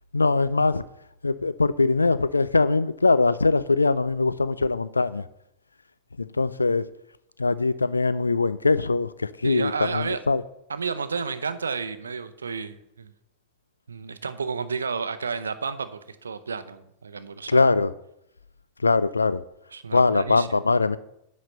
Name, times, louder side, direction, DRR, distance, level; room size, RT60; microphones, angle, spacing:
voice 1, 0.1-0.8 1.2-5.2 6.2-6.9 7.4-10.4 17.5-17.9 18.8-19.4 19.9-21.0, left 3 dB, 80° left, 0.3 m, -22 dB
voice 2, 9.4-10.2 10.7-13.1 13.9-17.6 19.7-20.6, right 5 dB, 75° right, 0.7 m, -31 dB
10.0 x 4.1 x 6.5 m
figure-of-eight pair, 90°, 0 cm